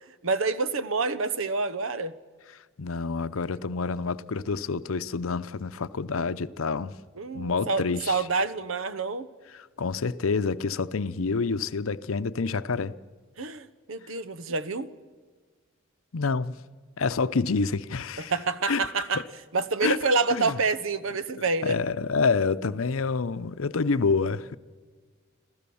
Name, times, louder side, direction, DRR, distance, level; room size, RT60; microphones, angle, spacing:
voice 1, 0.2-2.1 7.2-9.3 13.4-14.9 18.2-19.2 19.5-21.8, right 4 dB, 80° right, 1.0 m, -27 dB
voice 2, 2.8-7.0 7.3-8.2 9.5-13.0 16.1-16.5 17.0-18.3 18.7-18.8 19.1-19.2 19.8-20.0 20.3-20.6 21.6-24.6, left 4 dB, 85° left, 0.7 m, -27 dB
26.5 x 15.0 x 7.1 m
head